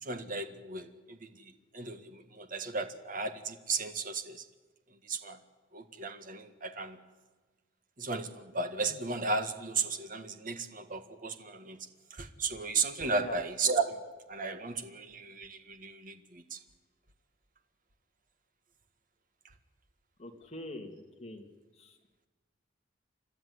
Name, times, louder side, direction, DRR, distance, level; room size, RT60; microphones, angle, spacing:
voice 1, 0.0-4.4 5.0-5.4 5.7-7.0 8.0-14.0 14.3-16.6, right 4 dB, 50° right, 8 dB, 1.8 m, -35 dB
voice 2, 20.2-21.5 21.8-21.9, left 1 dB, 35° left, 2 dB, 2.7 m, -43 dB
30.0 x 12.5 x 9.7 m, 1.3 s
head